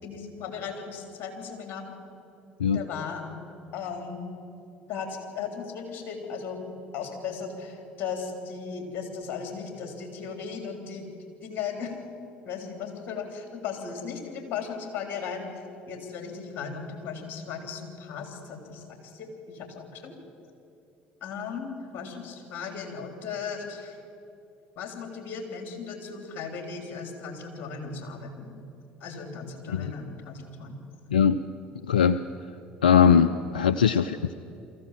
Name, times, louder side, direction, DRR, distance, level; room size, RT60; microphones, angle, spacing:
voice 1, 0.0-1.9 2.7-3.2 3.7-4.2 4.9-11.1 11.4-12.0 12.4-20.2 21.2-24.0 24.8-28.5 29.0-30.8, left 6 dB, 55° left, 4 dB, 3.6 m, -37 dB
voice 2, 31.8-32.2 32.8-34.3, left 7 dB, 90° left, 14 dB, 0.4 m, -20 dB
23.5 x 15.0 x 7.5 m, 2.8 s
hypercardioid pair, 60°, 4 cm